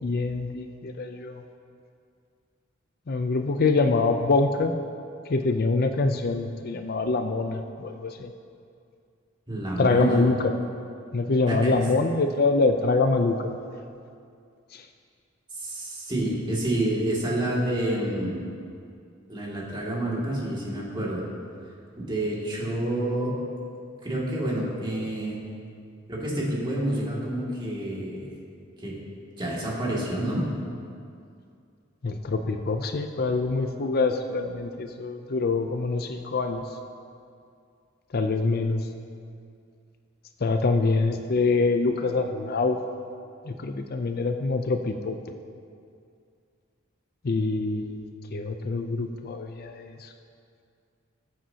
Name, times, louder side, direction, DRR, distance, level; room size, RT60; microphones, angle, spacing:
voice 1, 0.0-1.4 3.1-4.7 5.3-8.3 9.8-10.5 11.1-13.5 14.7-14.8 32.0-36.6 38.1-38.9 40.4-42.8 43.5-45.2 47.2-50.1, left 3 dB, 50° left, 6 dB, 0.5 m, -25 dB
voice 2, 9.5-10.3 11.5-11.8 15.6-18.4 19.3-21.2 22.0-23.4 24.0-25.4 26.1-28.3 28.8-29.0 29.4-30.5, right 1 dB, 25° right, -6 dB, 2.3 m, -28 dB
19.0 x 7.7 x 2.9 m, 2.4 s
head